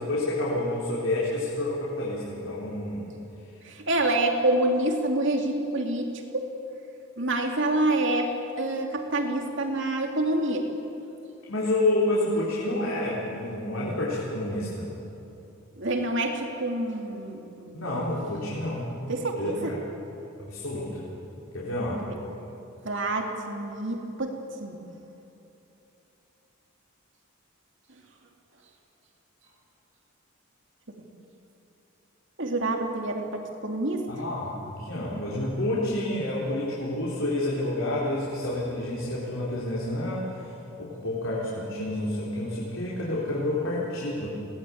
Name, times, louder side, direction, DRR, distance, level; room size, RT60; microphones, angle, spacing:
voice 1, 0.0-3.1 11.5-14.9 17.7-19.0 19.4-19.8 20.4-21.1 21.5-22.0 34.1-40.5 40.8-44.3, left 1 dB, 65° left, -6 dB, 4.2 m, -29 dB
voice 2, 3.6-6.5 7.2-10.7 15.8-18.3 19.1-19.7 22.0-22.2 22.8-24.8 27.9-28.0 32.4-34.1, right 1 dB, 55° right, 3 dB, 2.7 m, -27 dB
22.0 x 18.5 x 8.7 m, 3.0 s
head